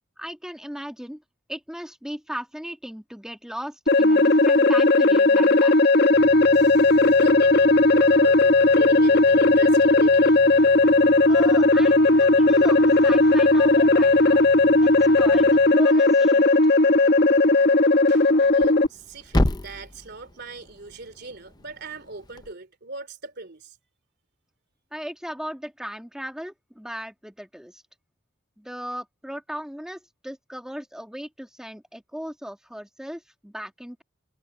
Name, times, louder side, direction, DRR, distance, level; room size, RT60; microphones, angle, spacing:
voice 1, 0.2-1.2 1.5-5.7 11.2-14.4 14.8-16.5 24.9-27.8 28.6-34.0, equal, 5° right, 1.6 m, -37 dB
sound 1, 3.9-18.9, left 2 dB, 55° left, 1.1 m, -17 dB
sound 2, 6.1-15.7, left 1 dB, 75° left, 2.9 m, -42 dB
voice 2, 6.5-10.6 18.1-23.8, right 3 dB, 55° right, 3.1 m, -39 dB
Thump thud, 18.4-22.5, left 1 dB, 20° left, 0.7 m, -30 dB
head